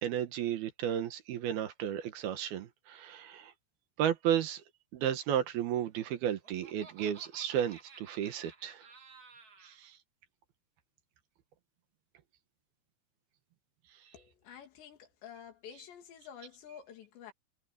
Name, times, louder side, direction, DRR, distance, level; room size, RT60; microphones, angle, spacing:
voice 1, 0.0-3.5 4.0-4.6 4.9-8.9 9.6-10.0, right 10 dB, 70° right, 3.0 m, -33 dB
Laughter, 6.0-9.8, right 4 dB, 35° right, 1.6 m, -55 dB
voice 2, 14.1-17.3, left 8 dB, 85° left, 4.8 m, -50 dB
omnidirectional pair, 4.9 m